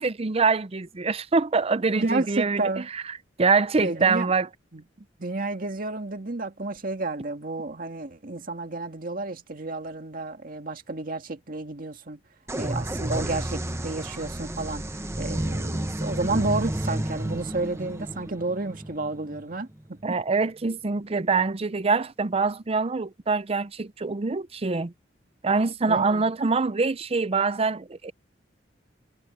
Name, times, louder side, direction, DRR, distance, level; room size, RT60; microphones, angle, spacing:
voice 1, 0.0-2.8 3.4-4.5 20.0-24.9 25.4-28.1, right 4 dB, 35° right, 0.6 m, -24 dB
voice 2, 2.0-2.9 3.8-4.3 4.7-4.8 5.2-12.2 12.6-20.2 25.9-26.3, right 2 dB, 50° right, 2.0 m, -31 dB
sound 1, 12.5-20.1, right 1 dB, 15° right, 1.1 m, -31 dB
head